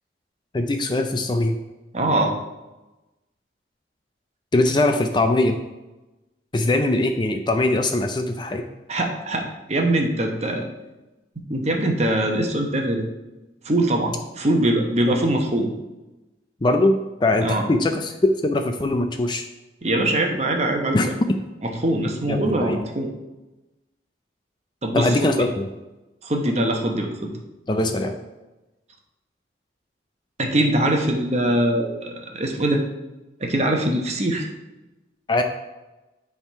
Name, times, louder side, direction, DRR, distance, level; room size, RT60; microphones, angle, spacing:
voice 1, 0.5-1.6 4.5-5.6 6.5-8.6 16.6-19.5 20.9-21.4 22.3-22.8 24.9-25.7 27.7-28.1 35.3-35.4, left 2 dB, 25° left, 5 dB, 0.4 m, -21 dB
voice 2, 1.9-2.3 8.9-10.6 11.5-13.0 13.6-15.7 17.4-17.7 19.8-21.0 21.6-23.1 24.8-25.3 26.2-27.3 30.4-32.8 33.4-34.5, right 1 dB, 35° right, 2 dB, 0.9 m, -22 dB
9.9 x 3.6 x 4.6 m, 1.0 s
head